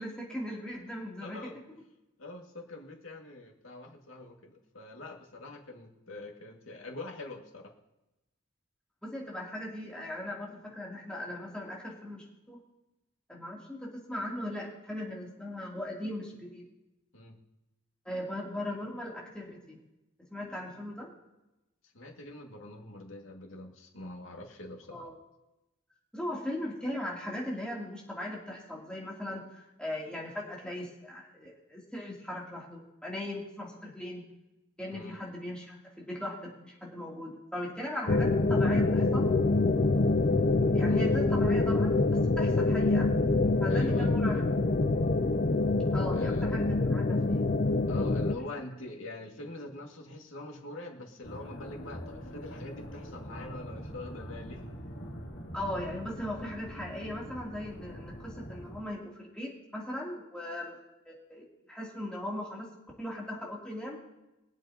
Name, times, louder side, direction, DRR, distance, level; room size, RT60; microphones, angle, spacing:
voice 1, 0.0-1.6 9.0-12.6 13.3-16.6 18.0-19.8 20.3-21.1 24.9-25.1 26.1-34.2 34.8-39.4 40.7-43.1 43.6-44.4 45.9-46.6 46.9-47.4 55.5-60.8 61.1-62.7 63.0-64.0, left 1 dB, 5° left, -4 dB, 2.9 m, -38 dB
voice 2, 1.2-1.6 2.2-7.7 17.1-17.4 21.9-25.0 34.9-35.2 40.9-41.1 43.7-44.1 46.1-46.5 47.9-54.7, left 2 dB, 85° left, 1 dB, 2.1 m, -44 dB
sound 1, 38.1-48.4, left 3 dB, 40° left, 0.5 m, -25 dB
sound 2, 51.2-58.8, equal, 60° left, 2.5 m, -43 dB
23.0 x 8.1 x 2.9 m, 0.96 s
head